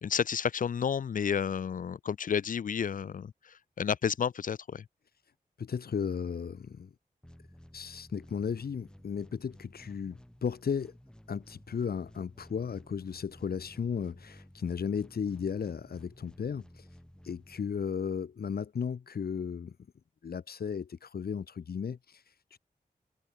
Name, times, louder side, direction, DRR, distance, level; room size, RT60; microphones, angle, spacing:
voice 1, 0.0-4.9, left 7 dB, 60° left, 0.4 m, -31 dB
voice 2, 5.6-6.9 7.7-10.9 11.3-16.9 17.2-19.8 20.2-22.6, left 6 dB, 85° left, 1.3 m, -35 dB
sound 1, 7.2-18.2, equal, 5° left, 3.4 m, -55 dB
wide cardioid pair, 120°, 15 cm